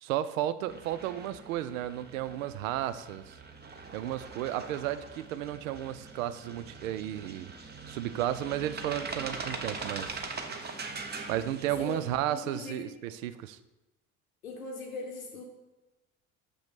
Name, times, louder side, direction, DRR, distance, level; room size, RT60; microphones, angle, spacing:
voice 1, 0.0-3.3 3.9-7.5 7.9-10.2 11.3-13.6, right 12 dB, 70° right, 14 dB, 0.5 m, -33 dB
sound 1, 0.7-12.2, right 4 dB, 25° right, 0.9 m, -42 dB
voice 2, 11.8-12.9 14.4-15.4, left 3 dB, 85° left, 0 dB, 0.9 m, -40 dB
6.2 x 5.8 x 5.7 m, 1.0 s
figure-of-eight pair, 60°, 42 cm